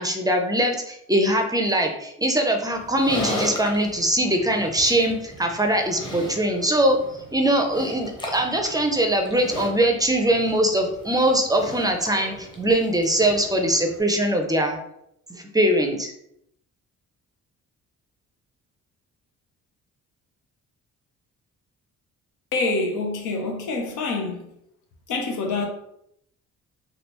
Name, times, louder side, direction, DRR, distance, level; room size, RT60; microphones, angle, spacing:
voice 1, 0.0-7.0 7.3-14.8 15.3-16.1, right 1 dB, 15° right, 0.4 m, -22 dB
Livestock farm animals working animals, 2.7-14.0, left 1 dB, 15° left, 0.7 m, -37 dB
voice 2, 22.5-24.4 25.1-25.7, left 3 dB, 85° left, 0.8 m, -26 dB
3.4 x 2.3 x 2.9 m
cardioid pair, 90°, 30 cm